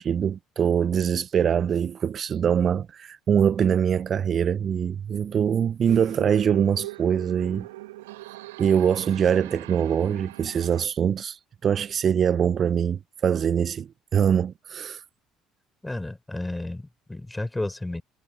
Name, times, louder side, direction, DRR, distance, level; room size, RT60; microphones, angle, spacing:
voice 1, 0.0-7.7 8.6-15.0, right 8 dB, 40° right, 0.6 m, -23 dB
sound 1, 5.9-10.9, right 18 dB, 75° right, 1.4 m, -40 dB
voice 2, 15.8-18.0, left 2 dB, 10° left, 4.5 m, -32 dB
figure-of-eight pair, 55°, 0 cm